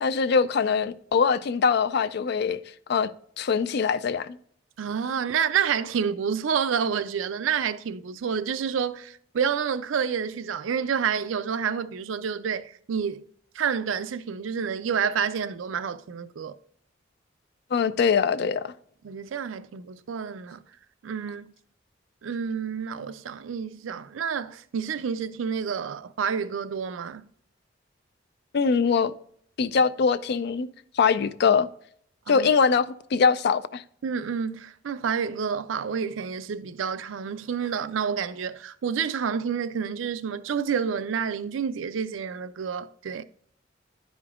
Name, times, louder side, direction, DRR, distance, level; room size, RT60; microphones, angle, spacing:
voice 1, 0.0-2.6 2.9-3.1 3.4-4.4 17.7-18.7 28.5-29.1 29.6-30.7 30.9-31.7 32.3-33.8, left 5 dB, 55° left, 0.4 m, -22 dB
voice 2, 4.8-13.3 13.6-16.6 19.0-20.6 21.0-21.5 22.2-27.3 32.3-32.5 34.0-43.2, right 7 dB, 90° right, 0.4 m, -29 dB
10.5 x 5.1 x 2.4 m
head